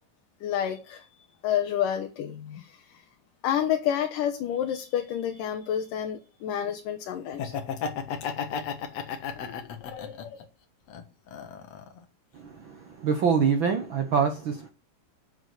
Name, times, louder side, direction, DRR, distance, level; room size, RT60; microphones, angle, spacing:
voice 1, 0.4-1.1 1.4-3.0 3.4-7.5 8.2-8.3 9.4-10.4, left 9 dB, 75° left, 2.7 m, -30 dB
Laughter, 7.3-10.4 10.9-12.0, left 6 dB, 60° left, 2.3 m, -33 dB
voice 2, 12.6-14.7, right 6 dB, 80° right, 1.1 m, -25 dB
8.1 x 7.5 x 8.1 m
omnidirectional pair, 3.9 m